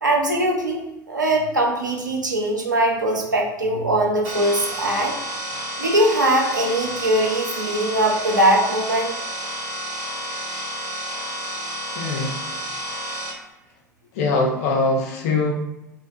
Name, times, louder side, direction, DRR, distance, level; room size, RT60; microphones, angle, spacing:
voice 1, 0.0-5.1 5.8-9.1, right 1 dB, 85° right, 0 dB, 0.5 m, -21 dB
sound 1, 4.2-13.3, equal, 50° right, 1.1 m, -30 dB
voice 2, 11.9-12.4 14.1-15.5, left 3 dB, 55° left, 0 dB, 0.6 m, -22 dB
2.8 x 2.3 x 2.7 m, 0.95 s
figure-of-eight pair, 75°, 10 cm